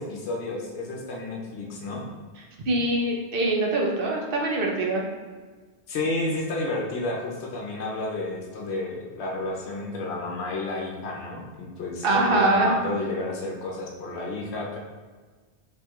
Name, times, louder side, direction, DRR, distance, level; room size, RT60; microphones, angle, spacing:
voice 1, 0.0-2.0 5.9-14.8, left 2 dB, 75° left, -2 dB, 1.0 m, -31 dB
voice 2, 2.7-5.0 12.0-12.7, right 2 dB, 60° right, -1 dB, 0.8 m, -23 dB
4.4 x 3.1 x 2.3 m, 1.4 s
omnidirectional pair, 1.1 m